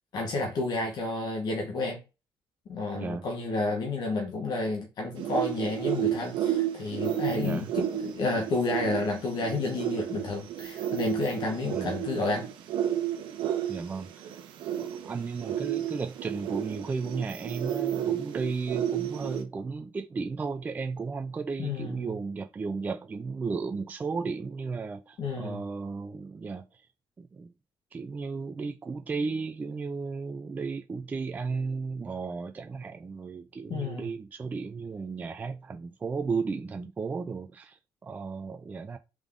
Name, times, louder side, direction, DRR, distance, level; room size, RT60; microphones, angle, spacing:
voice 1, 0.1-2.0 2.7-12.5 21.6-22.1 25.2-25.6 33.7-34.1, left 3 dB, 55° left, 1.2 m, -31 dB
sound 1, 5.2-19.4, right 11 dB, 90° right, 0.8 m, -32 dB
voice 2, 13.7-14.3 14.8-26.8 27.2-27.5 27.9-39.0, right 4 dB, 20° right, 0.3 m, -34 dB
3.6 x 3.6 x 3.6 m
cardioid pair, 160°, 8 cm